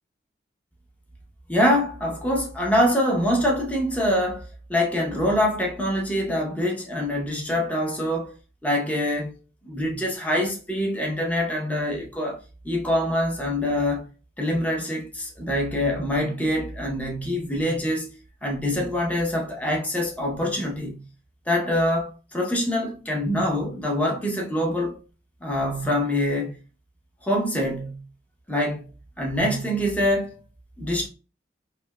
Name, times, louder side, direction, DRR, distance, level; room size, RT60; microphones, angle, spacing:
voice 1, 1.5-8.3 8.6-9.4 9.6-12.4 12.6-14.1 14.4-18.1 18.4-21.0 21.5-25.0 25.4-26.6 27.2-28.0 28.5-28.8 29.2-30.4 30.8-31.1, left 1 dB, 10° left, 0.7 m, -25 dB
3.3 x 2.7 x 2.2 m
head